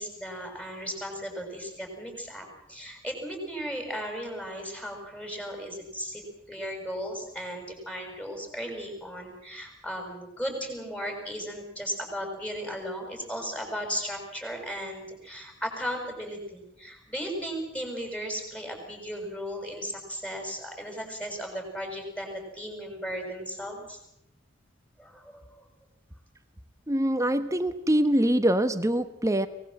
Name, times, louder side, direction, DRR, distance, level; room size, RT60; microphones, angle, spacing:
voice 1, 0.0-6.2 6.5-24.0 25.0-25.6, equal, 5° left, 3 dB, 6.5 m, -36 dB
voice 2, 26.9-29.5, right 1 dB, 15° right, 10 dB, 1.1 m, -24 dB
23.5 x 20.0 x 7.7 m, 0.80 s
head